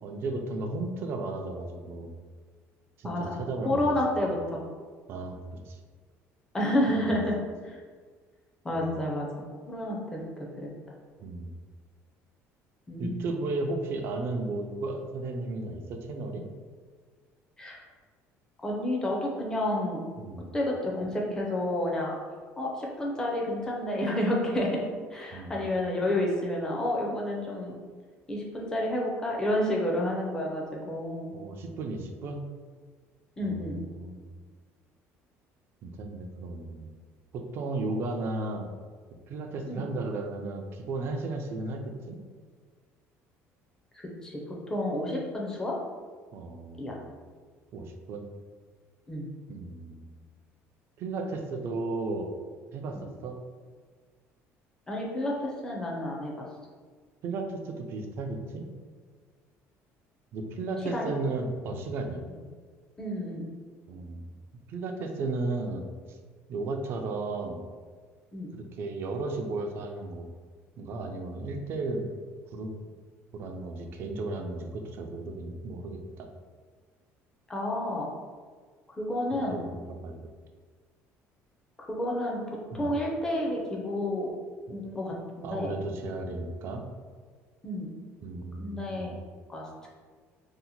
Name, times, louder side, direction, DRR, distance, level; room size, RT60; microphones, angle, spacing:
voice 1, 0.0-2.1 3.0-3.9 4.2-4.3 5.1-5.8 11.2-11.5 13.0-16.4 20.2-20.5 25.3-25.6 31.3-32.4 33.4-34.2 35.8-36.9 37.3-38.7 39.3-42.2 46.3-47.1 47.7-48.3 49.5-50.1 51.0-52.3 52.7-53.4 57.2-58.7 60.3-62.2 63.9-64.3 64.7-66.2 66.5-67.6 68.5-70.3 70.8-72.1 72.5-72.7 73.3-76.3 79.5-80.2 82.7-82.9 85.4-86.9 88.2-89.1, right 3 dB, 45° right, 4 dB, 0.4 m, -34 dB
voice 2, 3.6-4.6 6.5-7.4 7.6-7.8 8.6-9.3 9.7-10.7 12.9-13.3 17.6-17.8 18.6-20.0 20.5-22.1 22.6-24.8 25.1-27.8 28.3-31.3 33.4-33.8 39.7-39.8 43.9-44.4 44.7-45.7 46.8-47.0 49.1-49.3 54.9-56.5 60.9-61.1 63.0-63.5 68.3-68.5 77.5-78.1 79.0-79.6 81.9-84.3 84.7-85.7 87.6-87.9 88.6-89.1 89.5-89.9, left 1 dB, 10° left, -2 dB, 0.5 m, -30 dB
2.8 x 2.1 x 4.0 m, 1.5 s
cardioid pair, 170°, 6 cm